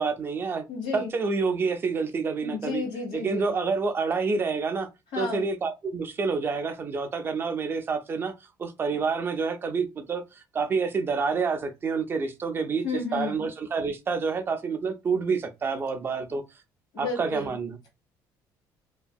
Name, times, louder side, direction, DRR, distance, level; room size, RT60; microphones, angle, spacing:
voice 1, 0.0-0.6 0.9-2.8 3.1-4.9 5.2-8.3 8.6-12.8 13.1-16.4 17.0-17.8, right 4 dB, 30° right, 0.4 m, -28 dB
voice 2, 0.7-1.1 2.4-3.5 5.1-5.4 12.8-13.5 16.9-17.6, left 4 dB, 85° left, 1.6 m, -32 dB
2.8 x 2.6 x 2.2 m
cardioid pair, 150°, 8 cm